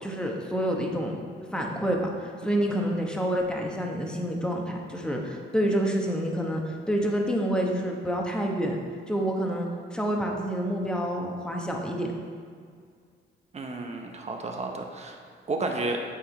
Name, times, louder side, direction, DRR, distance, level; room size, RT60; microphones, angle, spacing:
voice 1, 0.0-1.2 1.5-6.6 6.9-8.8 9.1-12.1, equal, 5° left, 0 dB, 1.0 m, -28 dB
voice 2, 13.5-15.2 15.5-16.0, right 3 dB, 35° right, 3 dB, 0.8 m, -31 dB
8.3 x 3.7 x 4.3 m, 2.1 s
cardioid pair, 90°, 20 cm